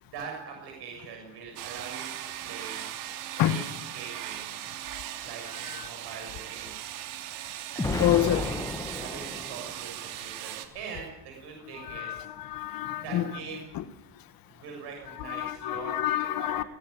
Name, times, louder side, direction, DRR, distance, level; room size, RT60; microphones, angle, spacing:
voice 1, 0.1-2.1 2.4-2.9 3.5-3.6 3.9-4.5 5.2-6.9 7.7-8.6 8.9-12.3 13.0-13.7 14.5-16.6, right 6 dB, 50° right, 6.9 m, -42 dB
sound 1, 1.6-10.7, right 12 dB, 80° right, 2.8 m, -39 dB
Explosion, 7.8-9.9, left 2 dB, 5° left, 1.3 m, -32 dB
voice 2, 8.0-8.4 11.7-13.3 13.7-13.8 15.2-16.6, left 13 dB, 45° left, 1.7 m, -28 dB
19.5 x 17.5 x 9.6 m
cardioid pair, 165°, 49 cm